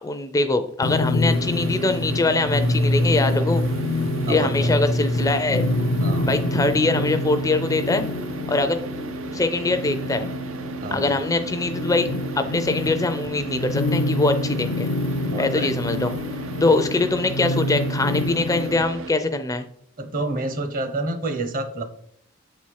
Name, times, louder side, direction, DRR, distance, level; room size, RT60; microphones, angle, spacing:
voice 1, 0.0-3.6 4.2-5.6 6.2-8.1 8.5-8.8 9.3-10.3 10.9-12.1 12.4-14.9 15.4-16.2 16.6-19.7, left 2 dB, 15° left, 9 dB, 0.4 m, -23 dB
sound 1, 0.8-18.8, left 1 dB, 80° left, 0.5 m, -26 dB
Car / Idling, 1.3-19.1, right 3 dB, 80° right, 0.6 m, -35 dB
voice 2, 4.3-4.7 6.0-6.3 10.8-11.1 15.3-15.7 20.0-21.8, right 2 dB, 45° right, 9 dB, 0.9 m, -28 dB
7.6 x 4.3 x 4.7 m, 0.66 s
head